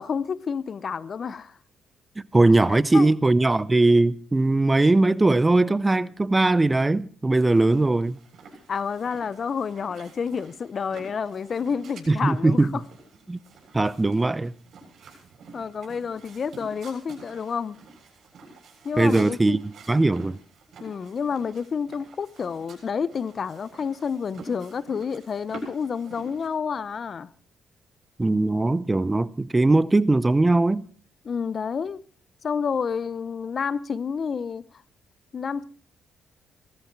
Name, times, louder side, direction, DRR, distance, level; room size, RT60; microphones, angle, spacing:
voice 1, 0.0-1.5 2.7-3.1 8.7-12.8 15.5-17.8 18.8-19.6 20.8-27.3 31.2-32.0 32.4-34.6 35.3-35.6, left 6 dB, 45° left, 0.7 m, -29 dB
voice 2, 2.3-8.2 12.1-12.8 13.3-13.4 13.7-14.5 19.0-19.6 19.9-20.4 28.2-30.8, right 2 dB, 20° right, 0.6 m, -20 dB
sound 1, 7.3-26.5, right 3 dB, 60° right, 7.2 m, -48 dB
18.0 x 14.0 x 4.6 m
cardioid pair, 90°, 0 cm